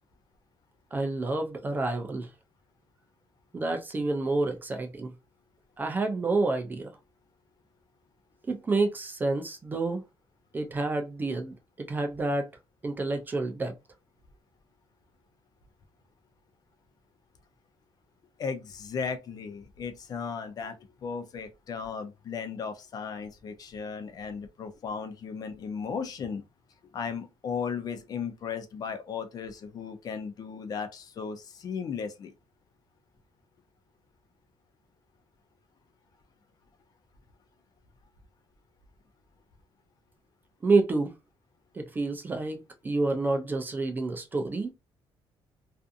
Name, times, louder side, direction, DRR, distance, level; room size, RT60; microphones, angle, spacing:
voice 1, 0.9-2.3 3.5-5.1 5.8-6.9 8.5-10.0 10.5-12.5 12.8-13.7 40.6-41.2 41.7-44.7, right 3 dB, 20° right, 0.4 m, -28 dB
voice 2, 18.4-26.4 26.8-32.3, left 6 dB, 40° left, 0.5 m, -36 dB
2.5 x 2.4 x 2.5 m
cardioid pair, 165°, 10 cm